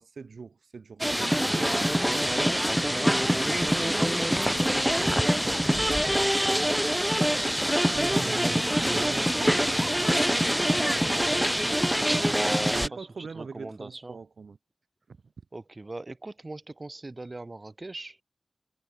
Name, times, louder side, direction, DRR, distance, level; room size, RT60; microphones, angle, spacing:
voice 1, 0.0-1.8 2.9-3.4 7.9-10.0 10.8-11.4 11.8-14.6 15.1-15.2, right 5 dB, 85° right, 2.6 m, -42 dB
sound 1, 1.0-12.9, equal, 5° right, 0.8 m, -25 dB
voice 2, 1.2-1.7 2.8-6.4 8.2-9.1 9.3-10.0 11.7-14.2 15.5-18.2, right 2 dB, 35° right, 5.5 m, -42 dB
sound 2, 5.3-12.8, left 1 dB, 15° left, 5.4 m, -47 dB
wide cardioid pair, 80°, 0 cm